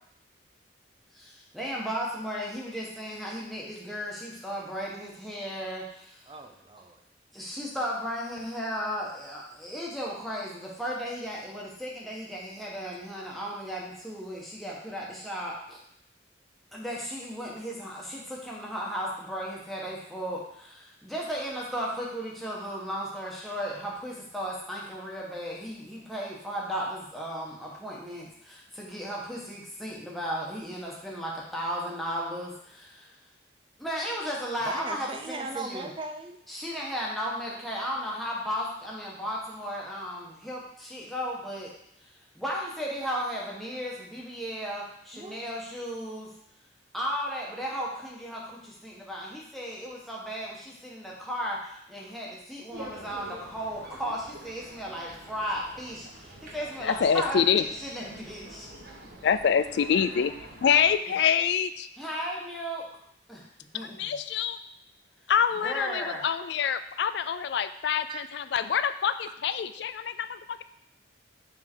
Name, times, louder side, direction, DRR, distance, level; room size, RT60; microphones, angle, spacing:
voice 1, 1.1-6.3 7.3-15.8 16.7-33.1 33.8-35.9 36.5-41.7 42.0-42.1 42.3-46.3 46.9-57.4 57.8-58.7 62.0-62.8 63.3-63.4 63.7-64.0 65.6-66.2, equal, ahead, -4 dB, 1.2 m, -35 dB
voice 2, 6.3-7.0 34.7-36.4 45.1-45.4 52.0-52.2 68.1-68.2, right 3 dB, 25° right, 6 dB, 0.5 m, -39 dB
sound 1, 52.7-61.0, right 2 dB, 55° right, 1.1 m, -47 dB
voice 3, 56.8-57.6 59.2-60.3 60.6-61.9 63.7-64.6 65.3-70.6, left 7 dB, 65° left, 12 dB, 0.3 m, -26 dB
6.4 x 3.8 x 4.5 m, 0.73 s
head